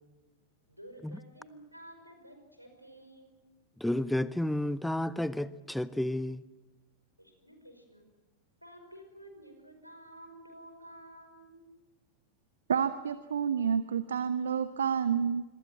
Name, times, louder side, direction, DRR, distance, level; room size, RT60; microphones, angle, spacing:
voice 1, 0.7-3.3 7.2-8.1 8.6-11.7, right 1 dB, 90° right, 5.4 m, -52 dB
voice 2, 3.8-6.4, left 1 dB, 5° left, 0.7 m, -31 dB
voice 3, 12.7-15.4, right 7 dB, 65° right, 0.9 m, -29 dB
27.0 x 22.5 x 7.7 m
figure-of-eight pair, 90°, 0 cm